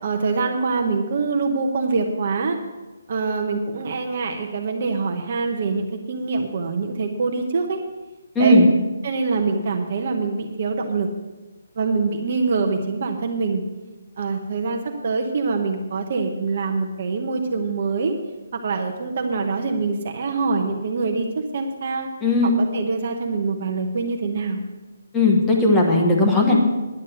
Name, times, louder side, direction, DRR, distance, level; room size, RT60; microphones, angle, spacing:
voice 1, 0.0-2.6 3.1-7.8 8.4-8.6 9.0-11.1 11.8-13.6 14.2-18.2 18.5-21.3 21.5-22.1 22.4-24.6, right 4 dB, 35° right, 3 dB, 1.0 m, -24 dB
voice 2, 8.3-8.7 22.2-22.5 25.1-26.6, left 2 dB, 5° left, 0 dB, 1.1 m, -17 dB
11.0 x 7.4 x 8.0 m, 1.1 s
hypercardioid pair, 175°, 0 cm